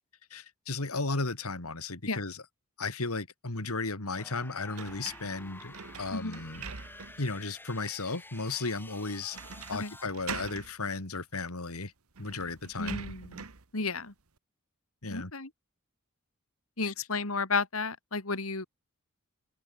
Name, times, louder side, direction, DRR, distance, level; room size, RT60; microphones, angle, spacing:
voice 1, 0.3-2.4 2.8-6.7 7.2-9.4 9.7-11.9 12.2-13.0 15.0-15.3 16.8-16.9, left 3 dB, 85° left, 2.6 m, -35 dB
sound 1, 4.2-10.1, left 2 dB, 10° left, 3.7 m, -50 dB
sound 2, 4.7-7.3 7.8-7.9 9.3-9.8 10.1-10.7 11.7-11.8 12.1-13.6, right 5 dB, 80° right, 1.6 m, -43 dB
voice 2, 12.8-13.4 13.7-14.1 15.1-15.5 16.8-18.7, left 4 dB, 70° left, 2.9 m, -32 dB
open air
head